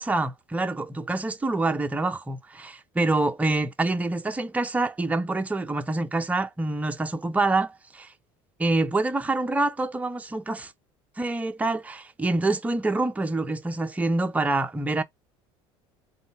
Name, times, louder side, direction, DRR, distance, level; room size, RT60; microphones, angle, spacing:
voice 1, 0.0-8.1 8.6-10.7 11.2-15.0, right 2 dB, 10° right, 0.7 m, -26 dB
3.8 x 2.3 x 4.3 m
supercardioid pair, 115°, 13 cm